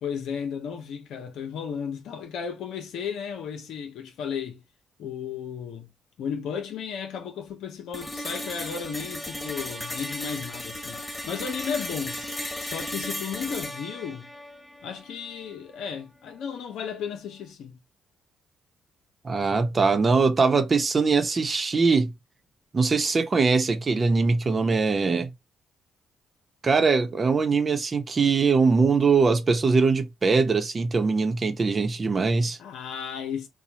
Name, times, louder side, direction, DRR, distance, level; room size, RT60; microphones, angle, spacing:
voice 1, 0.0-4.6 5.0-5.9 6.2-12.2 12.6-14.3 14.8-17.8 32.6-33.5, left 7 dB, 75° left, 0.8 m, -34 dB
sound 1, 7.9-15.9, left 1 dB, 20° left, 1.3 m, -36 dB
voice 2, 19.2-22.1 22.7-25.3 26.6-32.6, right 4 dB, 40° right, 0.9 m, -22 dB
4.2 x 2.4 x 2.9 m
supercardioid pair, 55°, 0 cm